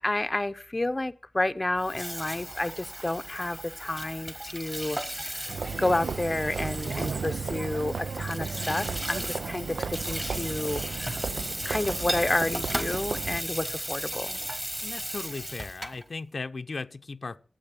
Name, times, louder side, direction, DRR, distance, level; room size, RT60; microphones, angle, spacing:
voice 1, 0.0-11.2 11.6-14.4, left 2 dB, 25° left, 0.7 m, -30 dB
Water tap faucet / Sink (filling or washing), 1.7-16.0, right 1 dB, 15° right, 1.3 m, -36 dB
sound 1, 5.5-13.4, right 5 dB, 85° right, 0.5 m, -34 dB
voice 2, 14.8-17.4, left 4 dB, 55° left, 0.6 m, -37 dB
12.5 x 8.4 x 7.6 m
wide cardioid pair, 110°, 0 cm